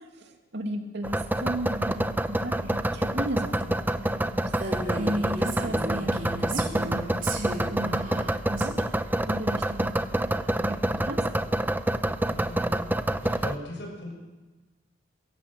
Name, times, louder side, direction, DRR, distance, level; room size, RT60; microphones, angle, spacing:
voice 1, 0.0-11.2, right 1 dB, 65° right, 3 dB, 2.7 m, -36 dB
sound 1, 1.0-13.6, right 1 dB, 10° right, 0.8 m, -27 dB
Female speech woman speaking, 4.5-8.7, right 2 dB, 45° right, 3.5 m, -36 dB
voice 2, 12.2-12.9 13.2-14.2, left 1 dB, 65° left, 1 dB, 6.6 m, -39 dB
23.0 x 16.5 x 7.7 m, 1.2 s
head